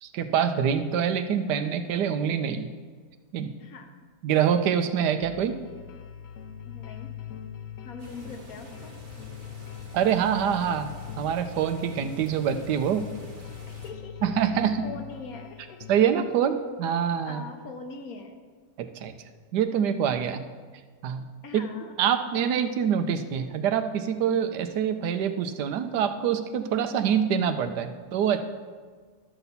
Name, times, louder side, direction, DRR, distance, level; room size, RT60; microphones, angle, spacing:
voice 1, 0.0-2.7 3.3-3.5 4.2-5.6 9.9-13.1 14.2-14.8 15.9-17.4 18.8-19.1 19.5-20.4 21.0-21.3 21.5-21.6 22.0-28.4, right 8 dB, 90° right, 9 dB, 1.3 m, -25 dB
voice 2, 3.6-3.9 6.6-7.1 7.8-8.9 13.7-15.8 17.2-18.3 21.4-21.9, left 4 dB, 65° left, 5 dB, 1.3 m, -42 dB
sound 1, 5.2-16.1, left 9 dB, 80° left, 0.6 m, -42 dB
sound 2, 8.0-13.9, equal, 60° right, 1.7 m, -47 dB
12.0 x 4.1 x 6.8 m, 1.5 s
omnidirectional pair, 1.7 m